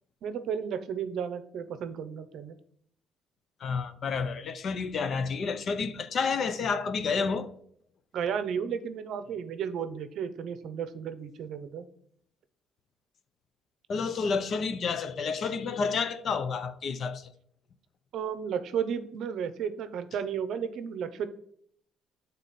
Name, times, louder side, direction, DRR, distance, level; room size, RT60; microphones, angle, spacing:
voice 1, 0.2-2.6 8.1-11.8 18.1-21.3, right 7 dB, 65° right, 0.6 m, -33 dB
voice 2, 3.6-7.5 13.9-17.3, left 5 dB, 50° left, 0.6 m, -30 dB
7.5 x 3.9 x 4.1 m
cardioid pair, 115°, 0 cm